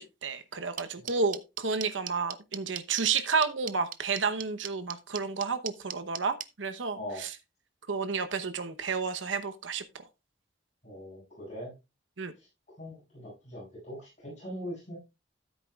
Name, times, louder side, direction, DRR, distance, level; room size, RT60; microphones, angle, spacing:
voice 1, 0.0-7.3 7.9-9.8 12.2-12.3, right 5 dB, 90° right, 0.9 m, -31 dB
sound 1, 0.8-6.5, right 11 dB, 45° right, 0.6 m, -37 dB
voice 2, 6.9-7.3 10.8-11.7 12.4-12.5 12.8-15.0, equal, 40° left, 6.6 m, -41 dB
13.5 x 8.4 x 2.4 m
head